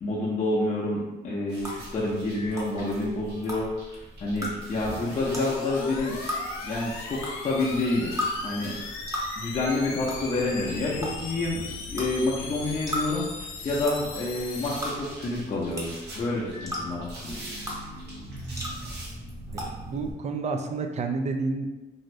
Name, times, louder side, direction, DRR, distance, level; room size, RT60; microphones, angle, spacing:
voice 1, 0.0-3.7 4.2-6.2 6.6-8.1 8.4-8.7 9.4-11.6 11.9-13.2 13.6-17.4, left 2 dB, 35° left, -6 dB, 0.6 m, -28 dB
sound 1, 1.5-19.1, right 1 dB, 60° right, 0.9 m, -47 dB
sound 2, 1.6-20.1, equal, 15° right, 0.8 m, -38 dB
sound 3, 4.8-14.8, left 4 dB, 90° left, 0.5 m, -39 dB
voice 2, 19.5-21.7, right 3 dB, 35° right, 5 dB, 0.4 m, -30 dB
2.6 x 2.4 x 3.1 m, 1.1 s
cardioid pair, 90°, 20 cm